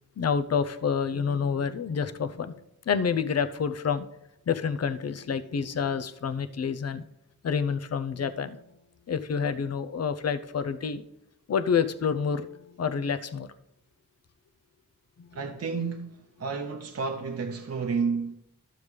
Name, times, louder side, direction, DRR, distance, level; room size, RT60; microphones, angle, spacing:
voice 1, 0.2-2.6 2.9-4.1 4.5-7.0 7.4-8.6 9.1-11.0 11.5-13.5 15.2-15.4, left 6 dB, 50° left, 0.6 m, -28 dB
voice 2, 15.3-18.3, right 5 dB, 45° right, 0.6 m, -31 dB
12.0 x 7.1 x 3.3 m
cardioid pair, 70°, 33 cm